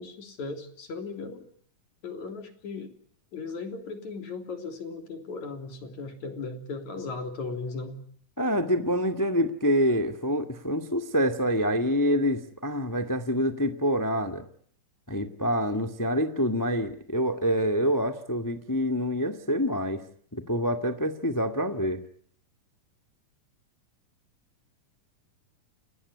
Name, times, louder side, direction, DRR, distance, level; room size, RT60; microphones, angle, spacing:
voice 1, 0.0-1.5 2.0-2.9 3.3-8.0, left 4 dB, 60° left, 6 dB, 4.7 m, -37 dB
voice 2, 8.4-14.5 15.1-20.0 20.3-22.0, equal, 10° left, 7 dB, 1.1 m, -26 dB
29.5 x 18.5 x 9.7 m, 0.63 s
omnidirectional pair, 3.7 m